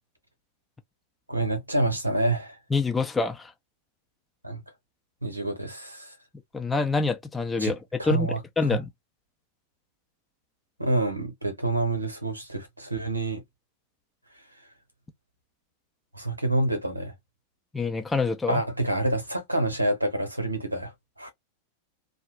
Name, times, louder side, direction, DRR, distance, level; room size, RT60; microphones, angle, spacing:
voice 1, 1.3-2.6 4.4-4.6 5.2-6.1 7.6-7.7 8.0-8.8 10.8-13.4 16.1-17.1 18.5-21.3, right 2 dB, 85° right, 0.9 m, -27 dB
voice 2, 2.7-3.5 6.5-7.8 8.0-8.3 8.6-8.9 17.7-18.6, left 4 dB, 10° left, 0.5 m, -26 dB
2.6 x 2.1 x 3.0 m
figure-of-eight pair, 90°, 0 cm